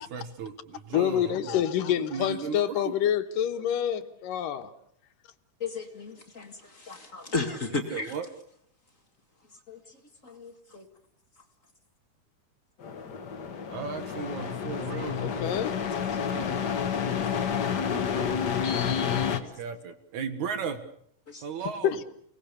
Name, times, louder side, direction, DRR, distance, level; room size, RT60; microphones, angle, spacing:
voice 1, 0.0-2.9 7.7-8.3 13.7-15.6 16.0-16.7 18.8-20.8 21.4-22.0, right 6 dB, 65° right, 3.0 m, -37 dB
voice 2, 0.9-4.7 15.1-15.7 21.8-22.0, left 10 dB, 85° left, 2.9 m, -27 dB
voice 3, 5.6-8.1 9.7-10.0 10.2-10.9 16.3-16.4 19.4-19.5 21.3-21.4, left 3 dB, 30° left, 1.7 m, -35 dB
sound 1, 12.8-19.4, left 7 dB, 50° left, 1.3 m, -29 dB
30.0 x 19.0 x 6.9 m
omnidirectional pair, 3.8 m